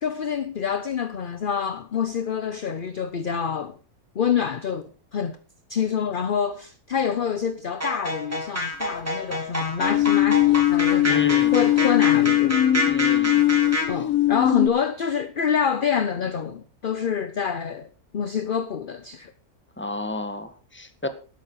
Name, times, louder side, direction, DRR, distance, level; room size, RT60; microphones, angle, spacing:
voice 1, 0.0-3.8 4.1-5.4 5.7-12.6 13.9-19.3, left 7 dB, 45° left, 0.8 m, -27 dB
sound 1, 7.8-13.9, equal, 10° right, 3.0 m, -28 dB
sound 2, 9.8-14.7, left 14 dB, 70° left, 1.2 m, -20 dB
voice 2, 11.0-11.5 12.9-13.4 19.8-21.1, left 2 dB, 10° left, 1.4 m, -31 dB
12.5 x 11.5 x 4.8 m
omnidirectional pair, 1.6 m